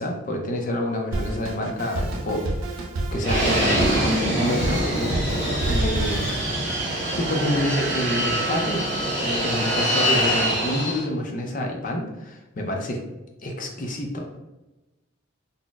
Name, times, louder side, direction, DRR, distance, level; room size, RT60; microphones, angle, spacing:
voice 1, 0.0-2.9 3.1-5.2 5.6-6.2 7.2-8.9 9.2-13.0 13.4-14.4, left 1 dB, 40° left, 2 dB, 0.4 m, -28 dB
Drum kit, 1.1-6.5, right 2 dB, 85° right, 0.5 m, -29 dB
Fixed-wing aircraft airplane, 3.2-11.0, right 1 dB, 35° right, 1.1 m, -24 dB
3.9 x 2.0 x 2.3 m, 1.1 s
head